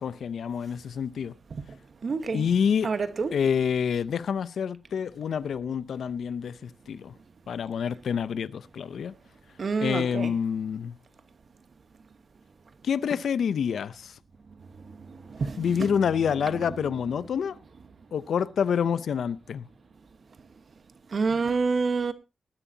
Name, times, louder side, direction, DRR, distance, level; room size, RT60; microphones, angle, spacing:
voice 1, 0.0-1.3 2.3-2.9 3.3-7.1 7.5-9.1 9.8-11.0 12.8-14.1 15.6-17.6 18.1-19.7, left 7 dB, 80° left, 0.6 m, -27 dB
voice 2, 2.0-2.5 2.8-3.3 9.6-10.3 15.4-15.7 21.1-22.1, right 4 dB, 50° right, 1.2 m, -27 dB
19.5 x 11.0 x 2.7 m
wide cardioid pair, 140°, 0 cm